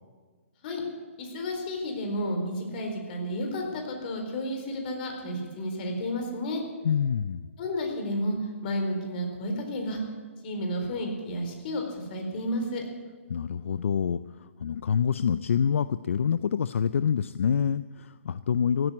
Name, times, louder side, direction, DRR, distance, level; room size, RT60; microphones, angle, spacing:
voice 1, 1.2-6.6 7.6-8.4 8.6-10.0 10.4-12.8, left 1 dB, 40° left, 3 dB, 4.1 m, -31 dB
voice 2, 6.8-7.5 13.3-18.9, left 7 dB, 70° left, 15 dB, 0.5 m, -26 dB
16.0 x 9.1 x 9.6 m, 1.5 s
hypercardioid pair, 145°, 7 cm